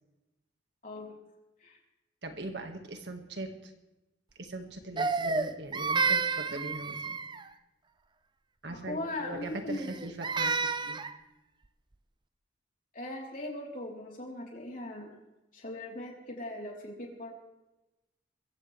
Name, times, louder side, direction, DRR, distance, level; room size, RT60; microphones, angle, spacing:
voice 1, 0.8-1.2 1.6-1.8 8.7-9.9 12.9-15.1 15.5-17.3, left 1 dB, 45° left, -1 dB, 3.7 m, -39 dB
voice 2, 2.2-3.7 4.4-7.2 8.6-11.0, right 1 dB, 65° right, 5 dB, 1.8 m, -40 dB
Crying sobbing, 5.0-7.5 9.7-11.2, right 4 dB, 25° right, 0.6 m, -30 dB
22.5 x 15.5 x 3.4 m, 1.0 s
head